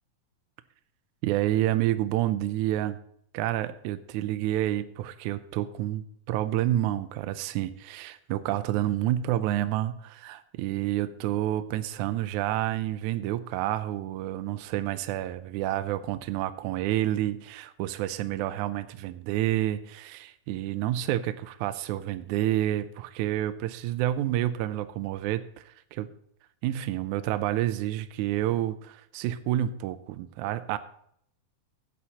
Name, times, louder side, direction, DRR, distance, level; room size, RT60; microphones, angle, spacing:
voice 1, 1.2-3.0 3.3-26.1 26.6-30.8, right 13 dB, 80° right, 11 dB, 1.9 m, -29 dB
15.5 x 8.4 x 2.9 m, 0.69 s
omnidirectional pair, 3.8 m